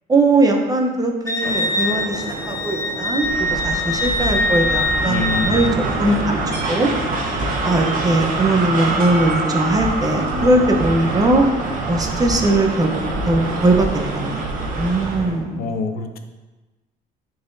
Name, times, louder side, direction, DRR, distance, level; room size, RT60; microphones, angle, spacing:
voice 1, 0.1-5.7 6.0-6.4 6.7-6.9 7.6-11.4 11.9-13.0 13.2-14.5 14.8-15.6, right 2 dB, 20° right, 2 dB, 0.9 m, -19 dB
Wind instrument woodwind instrument, 1.3-5.7, left 1 dB, 15° left, 0.8 m, -23 dB
sound 1, 1.4-15.4, right 3 dB, 90° right, 1.1 m, -32 dB
sound 2, 3.2-15.3, right 2 dB, 55° right, 1.4 m, -25 dB
voice 2, 5.0-5.6 15.6-16.2, left 4 dB, 65° left, 7 dB, 0.7 m, -25 dB
10.0 x 3.9 x 2.7 m, 1.2 s
cardioid pair, 110°, 17 cm